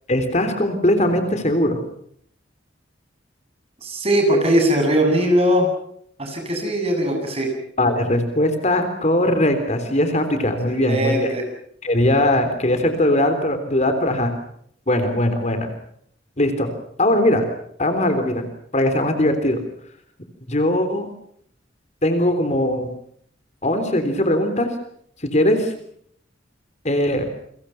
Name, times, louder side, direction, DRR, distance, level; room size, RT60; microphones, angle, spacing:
voice 1, 0.1-1.8 7.8-11.3 11.8-14.3 14.9-15.7 16.4-16.7 17.0-17.5 17.8-18.5 18.7-19.6 20.5-21.1 22.0-22.9 23.6-24.7 25.3-25.7 26.8-27.2, left 1 dB, 35° left, 8 dB, 3.5 m, -20 dB
voice 2, 3.8-5.7 6.2-7.5 10.7-11.4, equal, 30° right, 4 dB, 8.0 m, -20 dB
29.5 x 24.5 x 5.8 m, 0.67 s
head